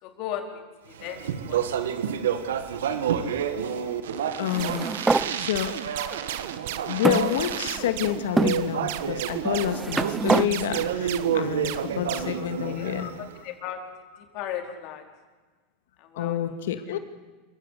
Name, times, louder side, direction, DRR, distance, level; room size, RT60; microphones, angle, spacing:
voice 1, 0.0-0.6 0.9-1.6 11.9-13.8 14.3-15.0 16.0-16.4, left 10 dB, 55° left, 4 dB, 4.4 m, -37 dB
Speech, 1.0-13.3, right 8 dB, 90° right, 1.7 m, -30 dB
voice 2, 4.4-4.9 5.4-5.8 6.9-13.1 16.2-17.0, left 10 dB, 85° left, 9 dB, 2.1 m, -28 dB
sound 1, 4.4-5.3 6.1-6.2 7.0-7.9 8.4-8.6 9.4-10.5, right 3 dB, 15° right, 0.8 m, -25 dB
sound 2, 4.6-12.5, right 14 dB, 70° right, 1.2 m, -35 dB
27.5 x 16.0 x 8.4 m, 1.3 s
supercardioid pair, 115°, 0 cm